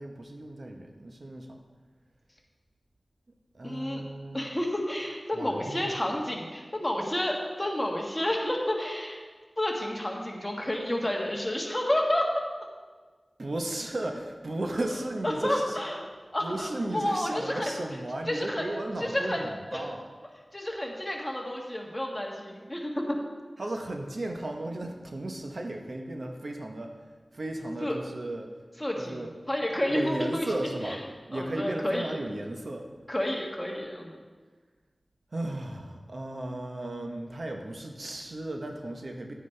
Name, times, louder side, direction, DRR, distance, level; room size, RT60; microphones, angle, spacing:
voice 1, 0.0-1.6 3.5-4.5 5.4-5.9 13.4-15.8 16.4-20.0 23.6-26.9 27.3-28.5 29.1-29.3 29.9-31.0 31.3-32.9 35.3-39.3, right 1 dB, 60° right, 3 dB, 0.9 m, -35 dB
voice 2, 3.6-4.0 4.3-9.2 9.6-12.5 15.2-16.1 16.3-17.7 18.3-18.7 19.0-19.9 20.5-23.2 27.8-28.0 28.8-30.5 30.8-31.0 31.3-32.2 33.1-34.1, left 1 dB, 20° left, -1 dB, 1.6 m, -30 dB
9.9 x 9.4 x 3.3 m, 1.4 s
wide cardioid pair, 75°, 0 cm